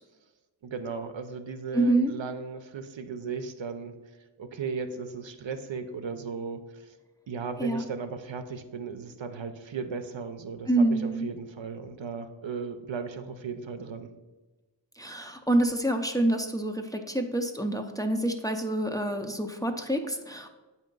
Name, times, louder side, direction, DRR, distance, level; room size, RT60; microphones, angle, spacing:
voice 1, 0.6-3.9 4.4-6.9 7.3-14.1, right 5 dB, 75° right, 7 dB, 0.7 m, -36 dB
voice 2, 1.7-2.1 7.6-7.8 10.7-11.2 15.0-20.5, right 1 dB, 10° left, 3 dB, 0.6 m, -27 dB
7.8 x 2.8 x 5.2 m, 1.2 s
wide cardioid pair, 55°, 46 cm